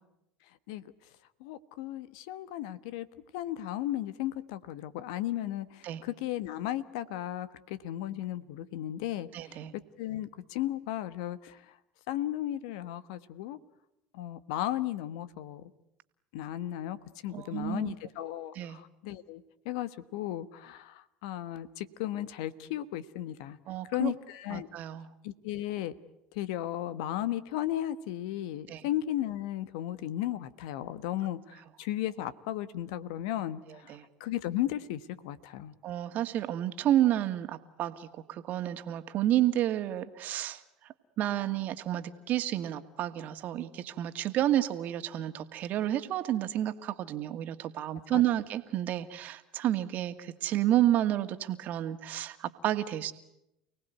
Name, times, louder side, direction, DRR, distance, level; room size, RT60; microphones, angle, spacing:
voice 1, 1.4-3.1 3.3-9.6 10.0-11.6 12.1-13.6 14.1-15.7 16.3-23.6 23.9-24.7 25.2-25.9 26.3-35.7 48.1-48.2, left 13 dB, 75° left, 15 dB, 1.2 m, -35 dB
voice 2, 9.3-9.7 17.3-17.9 18.5-18.8 23.7-24.1 24.5-25.1 28.7-28.8 33.7-34.1 35.8-40.6 41.2-53.1, right 12 dB, 55° right, 9 dB, 2.0 m, -30 dB
29.5 x 18.5 x 9.3 m, 0.87 s
hypercardioid pair, 75°, 3 cm